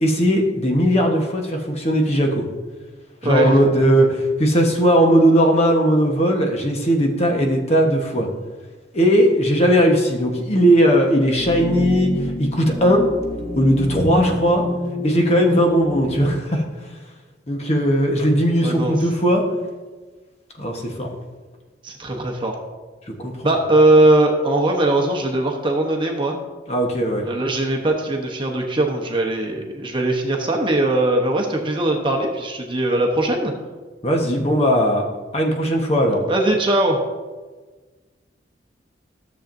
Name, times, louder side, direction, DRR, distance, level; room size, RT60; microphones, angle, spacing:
voice 1, 0.0-2.4 3.2-8.3 8.9-13.1 13.6-14.6 15.0-16.6 17.5-19.5 20.6-21.1 23.2-23.5 26.7-27.3 34.0-35.1 35.3-36.3, equal, 35° left, 1 dB, 1.1 m, -18 dB
voice 2, 3.2-3.6 18.6-18.9 21.8-22.5 23.4-26.4 27.2-33.5 36.3-37.0, right 2 dB, 25° right, 1 dB, 0.9 m, -20 dB
sound 1, 11.4-16.4, left 2 dB, 15° left, 0.5 m, -28 dB
13.5 x 7.1 x 2.6 m, 1.3 s
head